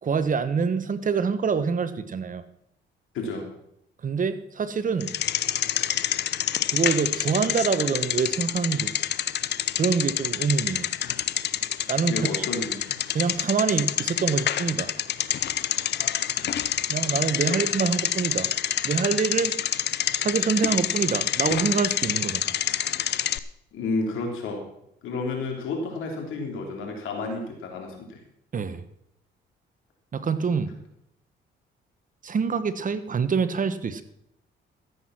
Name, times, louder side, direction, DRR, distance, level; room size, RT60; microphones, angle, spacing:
voice 1, 0.0-2.4 4.0-5.1 6.7-8.9 9.7-10.9 11.9-12.5 13.1-14.9 16.9-18.5 18.8-19.6 20.2-22.4 28.5-28.8 30.1-30.7 32.2-34.0, right 5 dB, 40° right, 12 dB, 1.2 m, -25 dB
voice 2, 3.1-3.5 12.1-13.0 17.5-17.6 23.7-24.6 25.0-28.2, left 3 dB, 85° left, 2 dB, 3.6 m, -31 dB
Bicycle, 5.0-23.4, left 10 dB, 60° left, 0.7 m, -27 dB
14.0 x 8.4 x 6.0 m, 0.76 s
cardioid pair, 90°, 20 cm